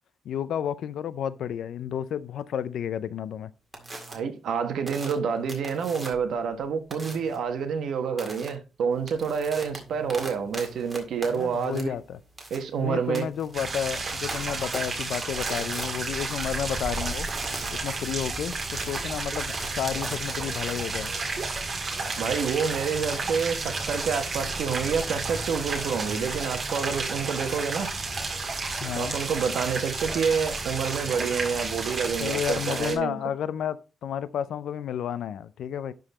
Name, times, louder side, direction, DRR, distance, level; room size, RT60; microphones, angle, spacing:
voice 1, 0.3-3.5 11.3-12.2 12.8-17.3 17.7-19.5 19.7-21.1 28.8-29.2 32.2-33.8 34.0-35.9, left 9 dB, 70° left, 0.5 m, -31 dB
sound 1, 3.7-4.1 4.9-6.3 6.9-7.4 8.2-8.5 8.9-20.8, right 2 dB, 15° right, 1.9 m, -40 dB
voice 2, 4.1-11.9 12.5-13.3 22.2-27.9 28.9-33.2, right 6 dB, 70° right, 1.3 m, -28 dB
sound 2, 13.5-32.9, right 3 dB, 35° right, 1.8 m, -32 dB
11.5 x 4.0 x 4.2 m
wide cardioid pair, 170°, 0 cm